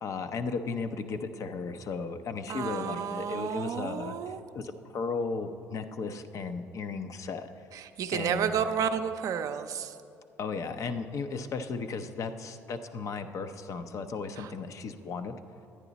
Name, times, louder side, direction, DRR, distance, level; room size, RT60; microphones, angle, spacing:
voice 1, 0.0-7.5 8.1-8.6 10.4-15.3, left 4 dB, 55° left, 8 dB, 0.6 m, -35 dB
voice 2, 2.5-4.4 7.7-10.0 14.4-14.5, right 8 dB, 60° right, 8 dB, 0.5 m, -31 dB
9.9 x 9.7 x 4.0 m, 2.5 s
supercardioid pair, 65°, 6 cm